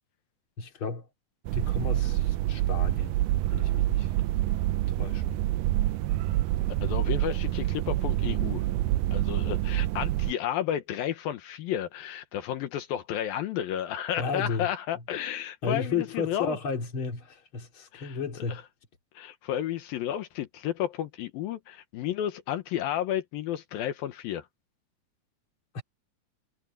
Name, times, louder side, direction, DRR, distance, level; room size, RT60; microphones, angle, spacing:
voice 1, 0.6-1.1 1.5-3.2 3.5-4.1 4.9-5.2 14.2-14.7 14.9-15.0 15.6-18.6 25.7-25.8, left 5 dB, 35° left, 3.4 m, -33 dB
sound 1, 1.5-10.3, right 15 dB, 80° right, 2.0 m, -27 dB
voice 2, 6.8-8.7 9.1-16.6 17.9-18.2 18.5-18.6 19.1-24.5, left 11 dB, 80° left, 3.0 m, -32 dB
omnidirectional pair, 4.2 m